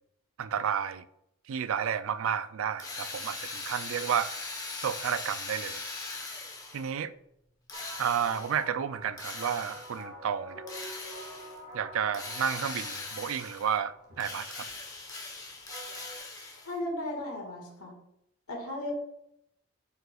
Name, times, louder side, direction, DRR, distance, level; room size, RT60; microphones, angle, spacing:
voice 1, 0.4-1.0 1.5-4.4 4.8-5.8 6.7-7.1 8.0-10.6 11.7-14.7, right 8 dB, 70° right, 0.3 m, -31 dB
Drill, 2.8-6.9 7.7-8.6 9.2-10.0 10.7-11.6 12.1-13.8 14.2-16.8, left 3 dB, 15° left, 1.0 m, -40 dB
sound 1, 7.7-16.2, right 1 dB, 55° right, 2.5 m, -46 dB
voice 2, 16.6-17.9 18.5-18.9, left 1 dB, 90° left, 1.9 m, -35 dB
7.5 x 5.5 x 2.4 m
head